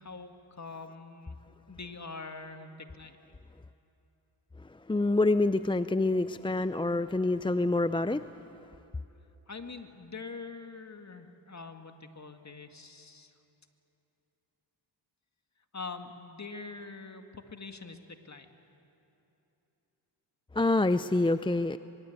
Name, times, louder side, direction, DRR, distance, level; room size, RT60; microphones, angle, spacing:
voice 1, 0.0-1.4 1.7-3.2 9.5-13.3 15.7-18.5, left 4 dB, 35° left, 6 dB, 2.1 m, -44 dB
voice 2, 4.9-8.3 20.5-21.8, left 2 dB, 10° left, 13 dB, 0.5 m, -26 dB
23.5 x 23.0 x 8.2 m, 3.0 s
cardioid pair, 55°, 48 cm